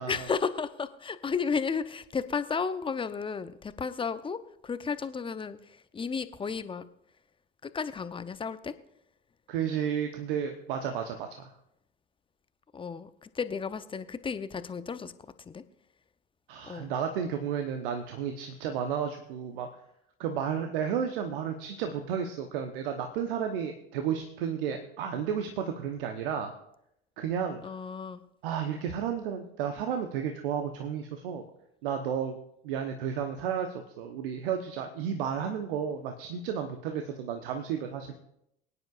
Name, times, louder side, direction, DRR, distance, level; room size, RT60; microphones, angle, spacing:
voice 1, 0.1-6.8 7.6-8.7 12.7-15.1 15.4-15.6 16.6-16.9 27.6-28.2, left 5 dB, 15° left, 12 dB, 0.8 m, -33 dB
voice 2, 9.5-11.5 16.5-19.7 20.2-26.5 27.2-27.6 28.4-31.5 31.8-32.4 32.6-38.1, right 8 dB, 65° right, 5 dB, 1.1 m, -32 dB
23.5 x 9.8 x 2.5 m, 0.78 s
figure-of-eight pair, 70°, 29 cm